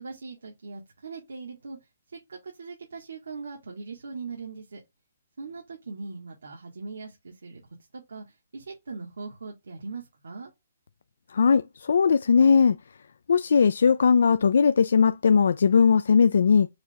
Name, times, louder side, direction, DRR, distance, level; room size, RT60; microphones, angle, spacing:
voice 1, 0.0-1.8 2.3-4.8 5.4-7.6 7.9-8.2 8.5-10.5, right 4 dB, 90° right, 1.4 m, -40 dB
voice 2, 11.3-12.8 13.3-16.7, left 6 dB, 75° left, 0.3 m, -19 dB
4.9 x 2.7 x 3.4 m
hypercardioid pair, 160°, 0 cm